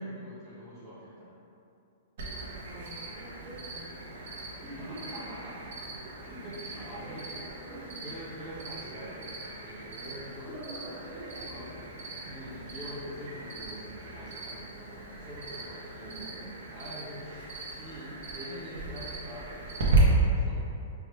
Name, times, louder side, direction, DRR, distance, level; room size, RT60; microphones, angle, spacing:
voice 1, 0.0-1.4 2.3-2.6 4.8-5.8 6.2-7.2 7.7-10.5 11.4-11.7 12.2-17.5 17.8-20.5, equal, 5° right, -13 dB, 0.5 m, -44 dB
Cricket, 2.2-20.0, right 3 dB, 60° right, 0.8 m, -38 dB
voice 2, 2.7-4.3 4.6-5.4 6.7-8.0 8.5-9.1 9.5-9.6 10.4-12.2 16.0-16.3, right 1 dB, 30° right, -9 dB, 1.1 m, -46 dB
4.5 x 2.2 x 3.1 m, 2.6 s
hypercardioid pair, 165°, 0 cm